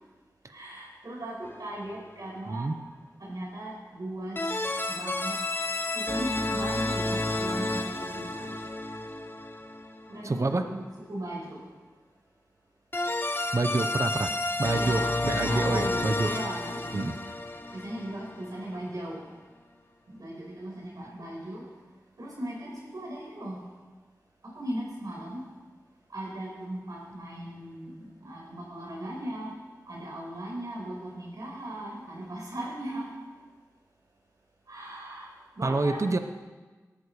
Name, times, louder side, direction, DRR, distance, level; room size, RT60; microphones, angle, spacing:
voice 1, 0.5-2.7 3.2-4.4 4.9-5.4 5.9-8.5 10.1-11.6 14.7-17.0 17.7-19.2 20.1-21.6 22.2-23.6 24.5-25.4 26.1-29.5 29.9-33.1 34.7-35.3 35.6-36.0, right 1 dB, 70° right, -2 dB, 5.4 m, -38 dB
sound 1, 1.4-1.9 4.4-10.2 12.9-18.8, left 2 dB, 35° left, 1.3 m, -31 dB
voice 2, 10.2-10.6 13.5-14.3 14.6-16.3 16.9-17.1 35.6-36.2, right 3 dB, 50° right, 8 dB, 1.0 m, -27 dB
18.5 x 13.5 x 4.9 m, 1.3 s
cardioid pair, 50°, 6 cm